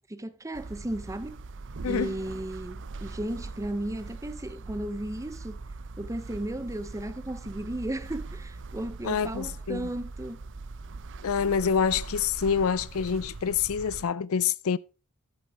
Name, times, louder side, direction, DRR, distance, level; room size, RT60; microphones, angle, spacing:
voice 1, 0.1-1.4 1.8-5.6 6.0-10.4, right 1 dB, 15° right, 0.7 m, -35 dB
sound 1, 0.5-14.0, right 3 dB, 55° right, 0.6 m, -41 dB
voice 2, 1.8-2.2 9.0-9.9 11.2-14.8, left 6 dB, 65° left, 0.4 m, -27 dB
14.0 x 7.1 x 3.5 m
head